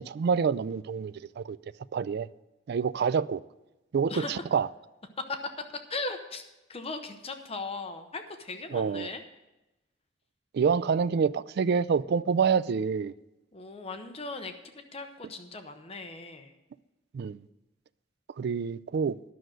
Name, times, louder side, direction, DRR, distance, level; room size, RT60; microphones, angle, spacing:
voice 1, 0.0-1.6 1.9-2.3 2.7-3.4 3.9-4.7 8.7-9.1 10.5-13.1 17.1-17.4 18.4-19.2, right 6 dB, 55° right, 0.3 m, -27 dB
voice 2, 4.0-4.4 5.3-5.4 5.9-9.2 13.5-14.5 14.9-16.5, left 3 dB, 30° left, 0.8 m, -38 dB
11.5 x 6.3 x 7.7 m
head